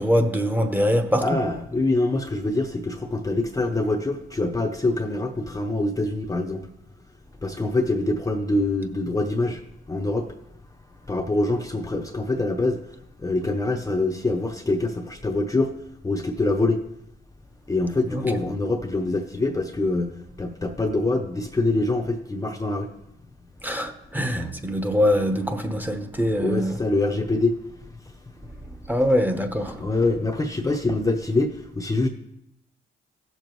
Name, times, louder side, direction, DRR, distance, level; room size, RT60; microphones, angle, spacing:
voice 1, 0.0-1.4 18.1-18.2 23.6-26.8 28.9-29.8, equal, 10° right, 0.9 m, -23 dB
voice 2, 1.2-6.7 7.4-9.6 9.9-10.3 11.1-12.8 13.2-15.7 16.0-16.8 17.7-20.1 20.4-22.9 26.4-27.6 29.7-32.1, left 2 dB, 15° left, 0.7 m, -24 dB
15.0 x 6.8 x 3.1 m
cardioid pair, 90°, 20 cm